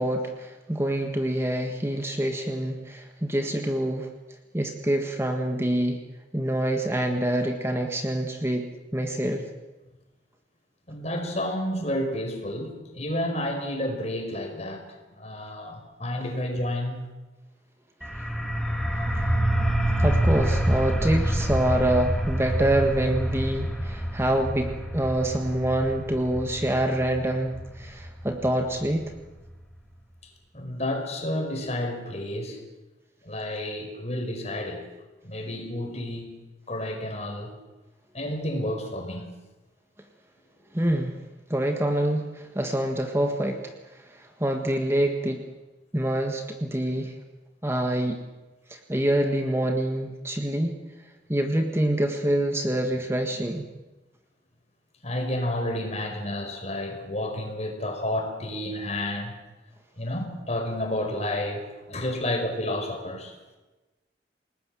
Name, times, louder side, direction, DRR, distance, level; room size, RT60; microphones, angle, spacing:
voice 1, 0.0-4.1 4.5-6.0 6.3-9.4 19.1-19.3 20.0-29.1 40.7-41.2 41.5-45.4 45.9-47.1 47.6-48.2 48.7-50.8 51.3-53.7, right 1 dB, 15° right, 4 dB, 1.6 m, -26 dB
voice 2, 10.9-14.8 15.1-17.0 30.5-32.6 33.2-34.9 35.2-36.3 36.7-37.5 38.1-39.2 55.0-59.3 60.0-63.3, left 1 dB, 35° left, 4 dB, 5.2 m, -30 dB
sound 1, 18.0-29.5, right 1 dB, ahead, 3.0 m, -27 dB
29.0 x 19.5 x 7.7 m, 1.1 s
head